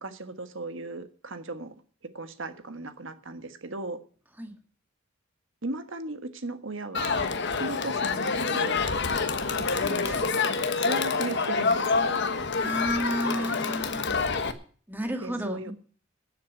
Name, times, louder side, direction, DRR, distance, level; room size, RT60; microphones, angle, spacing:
voice 1, 0.0-1.8 2.1-4.0 5.6-8.9 9.6-12.3 15.2-15.7, right 2 dB, 65° right, 9 dB, 1.5 m, -37 dB
Crowd, 6.9-14.5, left 4 dB, 60° left, 1.3 m, -27 dB
voice 2, 12.6-14.2 14.9-15.7, equal, 10° right, 5 dB, 1.8 m, -32 dB
12.5 x 7.4 x 9.1 m, 0.44 s
head